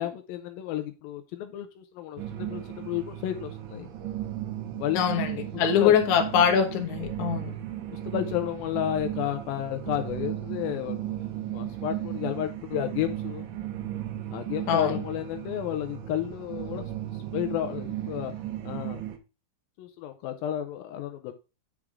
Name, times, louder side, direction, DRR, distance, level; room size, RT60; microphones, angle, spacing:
voice 1, 0.0-3.9 4.8-5.0 5.8-6.0 7.4-7.6 8.1-11.2 11.5-13.5 14.3-18.3 18.7-19.1 19.8-21.3, left 12 dB, 85° left, 2.5 m, -32 dB
sound 1, 2.2-19.2, right 12 dB, 70° right, 2.0 m, -35 dB
voice 2, 4.9-7.6 14.7-15.0, left 8 dB, 60° left, 2.4 m, -23 dB
8.8 x 4.9 x 3.5 m
omnidirectional pair, 4.3 m